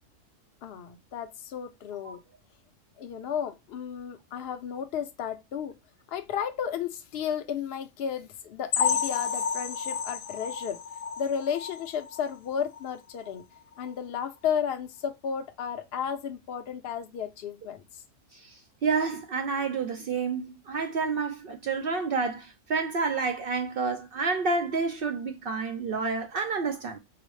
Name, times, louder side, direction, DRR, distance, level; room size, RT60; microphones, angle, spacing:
voice 1, 0.6-2.2 3.0-5.8 6.1-10.8 11.2-13.4 13.8-17.8, left 8 dB, 55° left, 0.8 m, -33 dB
sound 1, 8.7-12.3 12.7-12.9 13.3-13.4 13.8-13.9, left 6 dB, 75° left, 1.0 m, -31 dB
voice 2, 18.3-27.0, right 4 dB, 65° right, 0.5 m, -29 dB
4.8 x 2.0 x 3.1 m
omnidirectional pair, 1.4 m